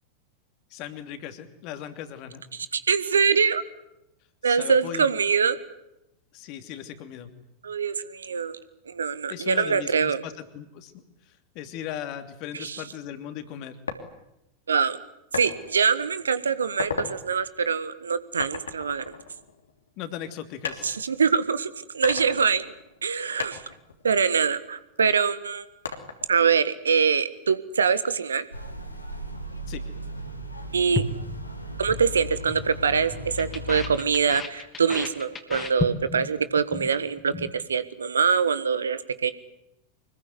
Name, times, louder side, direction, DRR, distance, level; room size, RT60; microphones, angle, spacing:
voice 1, 0.7-2.4 4.4-5.1 6.3-7.3 9.3-11.0 11.5-13.8 20.0-20.9 29.7-29.8, left 10 dB, 40° left, 8 dB, 2.9 m, -37 dB
voice 2, 2.5-3.6 4.4-5.6 7.6-8.6 8.9-10.2 12.5-12.8 14.7-15.0 15.3-19.1 20.8-22.7 23.0-23.6 24.0-25.6 26.3-28.4 30.7-31.0 31.8-39.3, right 6 dB, 70° right, 14 dB, 1.5 m, -24 dB
sound 1, 13.9-14.0 15.3-15.5 16.0-16.3 16.7-17.1 18.4-19.9 20.6-21.5 22.0-23.1 23.4-25.0 25.8-26.4, left 6 dB, 70° left, 3.1 m, -35 dB
sound 2, 28.5-34.0, equal, 90° left, 3.5 m, -37 dB
sound 3, 30.9-32.1 32.3-32.7 32.9-36.3 36.6-36.9 37.2-37.5, left 5 dB, 20° left, 3.3 m, -33 dB
25.0 x 21.0 x 9.6 m, 0.85 s
figure-of-eight pair, 90°, 0 cm